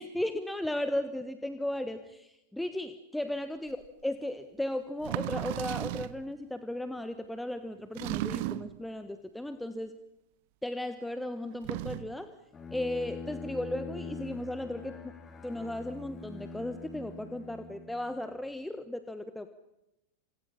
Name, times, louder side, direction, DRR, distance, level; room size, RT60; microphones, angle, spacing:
voice 1, 0.0-3.8 4.0-9.9 10.6-12.3 12.7-15.2 15.4-19.5, left 1 dB, 5° left, 10 dB, 1.3 m, -35 dB
sound 1, 3.8-3.9 5.0-6.2 8.0-8.8 11.5-12.2, right 18 dB, 50° right, 0.9 m, -35 dB
Bowed string instrument, 12.5-18.4, left 3 dB, 20° left, 3.4 m, -44 dB
29.5 x 26.5 x 5.7 m, 0.88 s
figure-of-eight pair, 90°, 0 cm